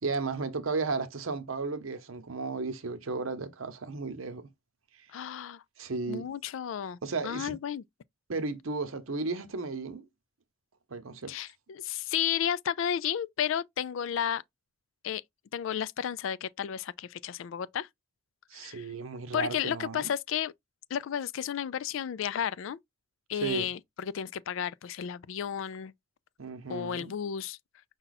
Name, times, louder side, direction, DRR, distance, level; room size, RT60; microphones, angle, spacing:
voice 1, 0.0-4.5 5.8-6.2 7.0-7.6 8.3-10.1 10.9-11.3 18.5-20.1 23.3-23.7 26.4-27.1, right 3 dB, 80° right, 0.8 m, -34 dB
voice 2, 5.1-5.6 6.1-7.0 7.2-7.8 11.3-14.4 15.0-15.2 15.5-17.9 18.5-18.9 19.3-20.5 20.9-22.8 23.3-25.9 26.7-27.6, left 9 dB, 65° left, 0.3 m, -32 dB
5.5 x 2.3 x 4.0 m
head